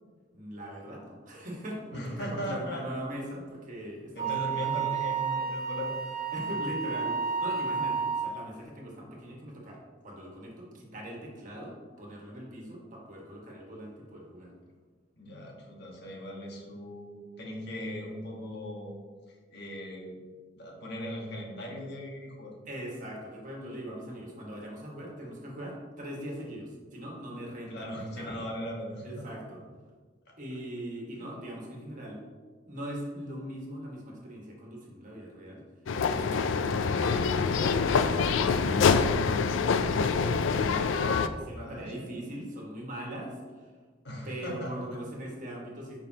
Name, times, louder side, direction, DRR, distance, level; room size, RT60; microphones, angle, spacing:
voice 1, 0.3-5.1 6.3-14.5 22.7-28.5 29.0-29.6 30.4-32.2 32.7-35.6 36.0-43.7 44.2-46.0, equal, 45° right, -2 dB, 1.6 m, -41 dB
voice 2, 1.9-2.8 4.1-5.9 6.5-6.6 15.2-19.0 19.3-20.2 20.5-22.5 27.7-29.2 30.3-30.4 31.1-31.2 41.6-42.2 44.0-44.7, equal, 60° left, -1 dB, 1.4 m, -38 dB
Wind instrument woodwind instrument, 4.2-8.4, right 6 dB, 20° right, 1.6 m, -31 dB
sound 1, 35.9-41.3, left 5 dB, 75° left, 0.4 m, -25 dB
9.4 x 5.3 x 2.9 m, 1.4 s
head